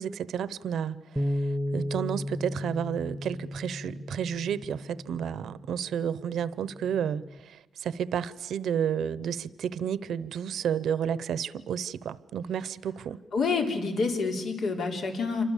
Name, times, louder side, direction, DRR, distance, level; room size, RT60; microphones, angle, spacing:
voice 1, 0.0-13.2, right 8 dB, 90° right, 0.8 m, -31 dB
Bass guitar, 1.2-7.4, left 1 dB, 10° right, 0.8 m, -35 dB
voice 2, 13.3-15.4, left 4 dB, 65° left, 3.8 m, -28 dB
28.0 x 25.0 x 7.3 m
wide cardioid pair, 175°, 0 cm